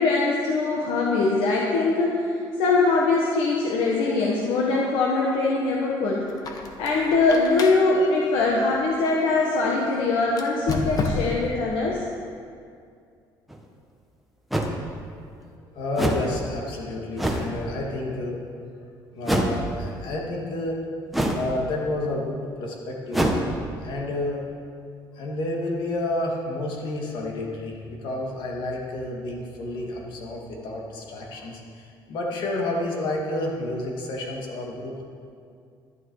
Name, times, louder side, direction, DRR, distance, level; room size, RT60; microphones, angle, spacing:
voice 1, 0.0-2.3 2.6-6.3 6.8-12.0, left 3 dB, 85° left, -2 dB, 1.5 m, -22 dB
Squeak, 6.3-9.5 10.3-11.6, left 3 dB, 45° left, 1.2 m, -32 dB
sound 1, 13.5-13.6 14.5-14.7 16.0-16.3 17.2-17.5 19.2-19.6 21.1-21.5 23.1-23.4, right 1 dB, ahead, 1.2 m, -24 dB
voice 2, 15.7-18.4 19.1-20.8 21.3-23.2 23.8-24.4 25.2-35.0, left 2 dB, 65° left, -1 dB, 2.4 m, -30 dB
12.0 x 11.0 x 4.8 m, 2.3 s
cardioid pair, 135°, 9 cm